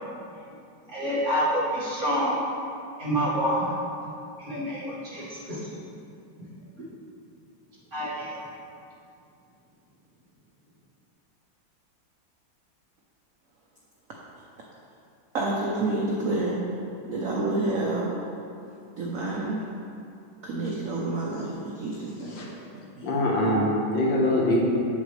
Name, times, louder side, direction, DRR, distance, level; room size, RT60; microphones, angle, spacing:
voice 1, 0.9-2.4 3.0-3.7 4.4-5.7 7.9-8.4, equal, 40° right, -8 dB, 1.9 m, -27 dB
voice 2, 15.3-16.6 17.1-18.1 19.0-19.6 20.4-22.4 22.7-23.1, right 2 dB, 60° right, -3 dB, 0.9 m, -29 dB
voice 3, 23.0-24.7, left 1 dB, 70° left, -3 dB, 1.9 m, -23 dB
8.0 x 7.5 x 3.2 m, 2.6 s
omnidirectional pair, 2.2 m